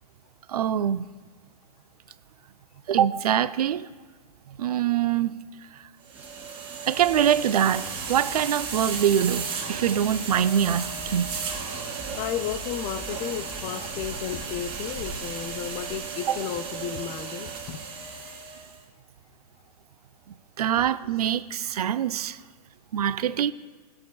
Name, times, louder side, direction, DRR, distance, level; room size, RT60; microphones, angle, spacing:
voice 1, 0.5-1.0 2.9-3.8 4.6-5.4 6.9-11.5 16.3-16.4 20.6-22.4 22.9-23.5, right 9 dB, 70° right, 14 dB, 0.5 m, -24 dB
sound 1, 6.1-15.4, equal, 10° right, 2.9 m, -45 dB
sound 2, 6.1-18.8, right 5 dB, 25° right, 2.3 m, -35 dB
voice 2, 12.2-17.8 20.8-20.9, left 10 dB, 35° left, 11 dB, 0.6 m, -33 dB
21.5 x 7.5 x 2.3 m, 1.3 s
hypercardioid pair, 115°, 20 cm